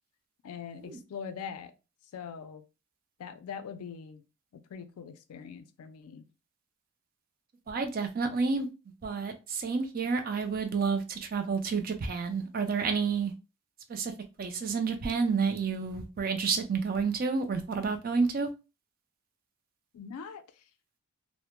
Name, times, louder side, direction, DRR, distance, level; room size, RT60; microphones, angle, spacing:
voice 1, 0.4-1.7 2.1-2.6 3.2-4.3 4.5-6.3 19.9-20.7, left 7 dB, 85° left, 0.4 m, -42 dB
voice 2, 7.7-8.7 9.0-13.3 13.9-14.1 14.4-18.5, right 5 dB, 40° right, 0.3 m, -30 dB
2.1 x 2.1 x 2.9 m
head